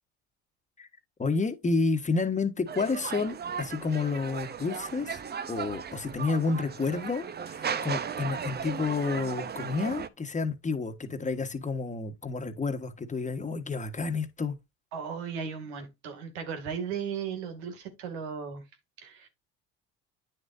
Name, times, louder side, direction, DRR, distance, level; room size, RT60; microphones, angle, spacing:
voice 1, 1.2-5.2 5.5-14.5, left 4 dB, 25° left, 1.4 m, -30 dB
sound 1, 2.7-10.1, right 7 dB, 30° right, 0.8 m, -36 dB
voice 2, 14.9-18.6 19.0-19.3, right 6 dB, 90° right, 2.4 m, -36 dB
9.3 x 6.5 x 2.6 m
supercardioid pair, 85°, 32 cm